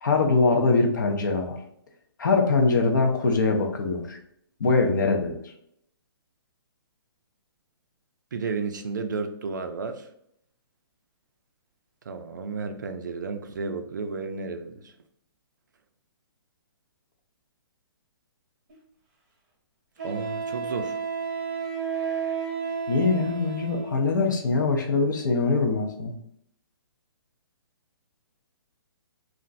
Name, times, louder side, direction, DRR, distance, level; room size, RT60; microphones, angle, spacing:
voice 1, 0.0-1.6 2.2-4.2 4.6-5.4 22.9-26.1, left 3 dB, 50° left, 2 dB, 0.6 m, -23 dB
voice 2, 8.3-10.1 12.1-14.9 20.0-21.0, right 4 dB, 50° right, 7 dB, 0.4 m, -32 dB
Wind instrument woodwind instrument, 18.7-18.8 20.0-24.1, right 6 dB, 20° right, 0.8 m, -32 dB
2.4 x 2.2 x 3.8 m, 0.73 s
hypercardioid pair, 175°, 13 cm